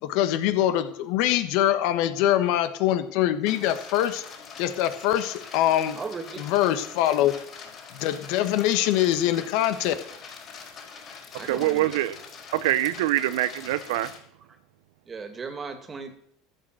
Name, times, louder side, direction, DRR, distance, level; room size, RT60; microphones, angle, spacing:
voice 1, 0.0-4.2 4.6-6.0 6.4-7.3 8.0-9.9, left 12 dB, 65° left, 1.3 m, -23 dB
sound 1, 3.5-14.2, left 6 dB, 45° left, 4.7 m, -44 dB
voice 2, 5.9-6.5 11.3-11.9 15.1-16.2, right 4 dB, 30° right, 2.3 m, -36 dB
voice 3, 11.4-12.1 12.5-14.1, right 14 dB, 75° right, 0.6 m, -24 dB
13.0 x 6.6 x 7.5 m
hypercardioid pair, 90°, 0 cm